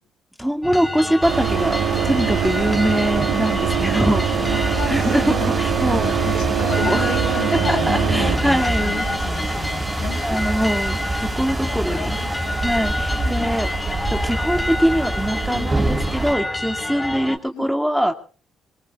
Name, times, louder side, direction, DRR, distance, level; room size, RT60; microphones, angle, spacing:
voice 1, 0.4-1.8 2.0-7.0 7.7-9.1 10.2-12.2 12.6-13.7 14.1-18.1, equal, ahead, 5 dB, 2.4 m, -23 dB
sound 1, 0.6-17.4, left 2 dB, 20° left, 4.2 m, -29 dB
sound 2, 1.2-16.3, right 2 dB, 25° right, 5.1 m, -26 dB
sound 3, 1.3-8.4, right 10 dB, 85° right, 3.6 m, -23 dB
voice 2, 4.4-5.5 5.9-10.9 11.3-12.6 13.1-13.6 15.5-15.7 17.5-17.7, left 6 dB, 75° left, 6 dB, 7.4 m, -32 dB
27.5 x 21.0 x 2.5 m, 0.40 s
cardioid pair, 90°, 0 cm